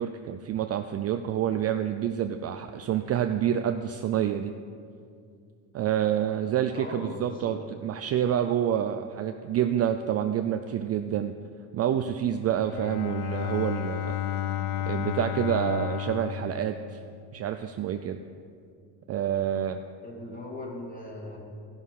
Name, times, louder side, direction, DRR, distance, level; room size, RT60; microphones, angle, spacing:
voice 1, 0.0-4.5 5.7-11.4 11.7-14.2 14.9-17.0 17.3-18.2 19.1-19.8, right 10 dB, 35° right, 7 dB, 0.4 m, -28 dB
voice 2, 6.7-7.5 20.0-21.4, left 1 dB, 20° left, -3 dB, 2.8 m, -39 dB
Bowed string instrument, 12.5-17.5, left 11 dB, 75° left, 0.6 m, -32 dB
14.5 x 6.5 x 5.5 m, 2.3 s
cardioid pair, 110°, 43 cm